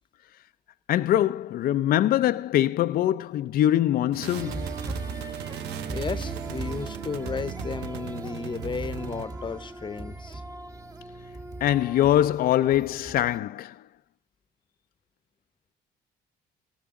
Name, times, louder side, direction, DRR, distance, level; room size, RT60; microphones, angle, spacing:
voice 1, 0.9-4.7 11.6-13.8, left 12 dB, 60° left, 0.6 m, -23 dB
sound 1, 4.1-9.3, right 11 dB, 85° right, 1.0 m, -39 dB
sound 2, 4.4-13.4, right 3 dB, 20° right, 1.4 m, -37 dB
voice 2, 5.9-10.4, left 5 dB, 30° left, 1.0 m, -34 dB
19.0 x 13.5 x 3.7 m
cardioid pair, 110°, 17 cm